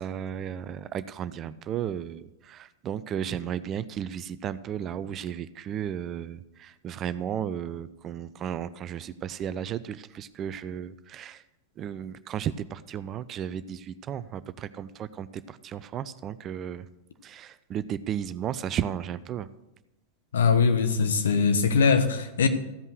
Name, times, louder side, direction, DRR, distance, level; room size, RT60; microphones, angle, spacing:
voice 1, 0.0-11.4 11.8-16.9 17.2-19.5, right 9 dB, 30° right, 15 dB, 0.5 m, -34 dB
voice 2, 20.3-22.5, left 5 dB, 65° left, 8 dB, 1.1 m, -22 dB
14.5 x 5.4 x 7.7 m, 0.95 s
figure-of-eight pair, 90°, 0 cm